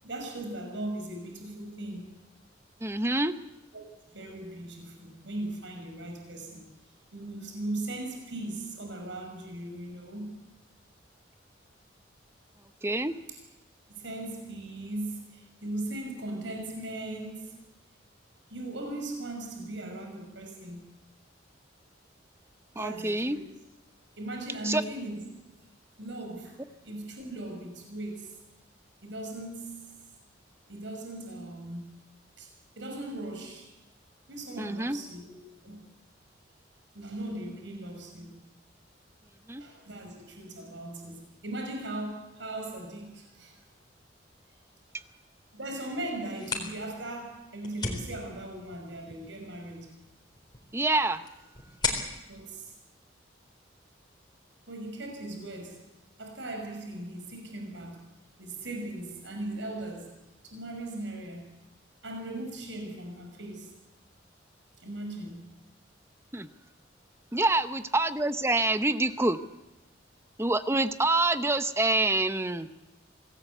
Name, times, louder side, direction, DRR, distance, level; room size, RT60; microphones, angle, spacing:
voice 1, 0.0-2.1 3.7-3.8 4.1-6.7 7.1-10.4 13.9-17.6 18.5-20.9 22.7-23.4 24.2-25.3 26.0-26.6 26.8-28.3 29.0-29.9 30.7-32.0 32.4-32.5 32.8-33.7 34.3-35.8 36.9-38.4 39.6-43.6 45.5-49.9 52.3-52.7 54.7-55.8 56.2-58.1 58.4-60.1 60.4-61.5 62.0-63.7 64.8-65.5, right 1 dB, 75° right, 4 dB, 5.8 m, -38 dB
voice 2, 2.8-3.3 12.8-13.1 22.8-23.4 24.6-24.8 34.6-35.0 39.5-39.6 50.7-51.2 66.3-66.5 67.3-69.4 70.4-72.7, right 2 dB, 15° right, 11 dB, 0.9 m, -26 dB
sound 1, 46.2-53.7, left 4 dB, 25° left, 4.0 m, -39 dB
26.0 x 18.5 x 8.2 m, 0.97 s
head